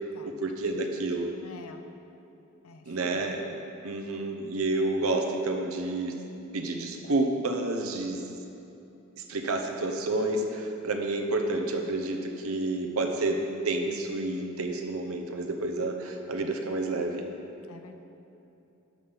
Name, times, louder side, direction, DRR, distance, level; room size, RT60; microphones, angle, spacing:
voice 1, 0.2-1.3 2.9-3.4 3.8-6.1 6.5-8.2 9.2-17.3, right 2 dB, 75° right, 3 dB, 0.8 m, -29 dB
voice 2, 1.4-1.8 2.6-3.6 17.7-18.0, left 3 dB, 85° left, 7 dB, 0.6 m, -49 dB
7.7 x 5.1 x 5.6 m, 2.9 s
head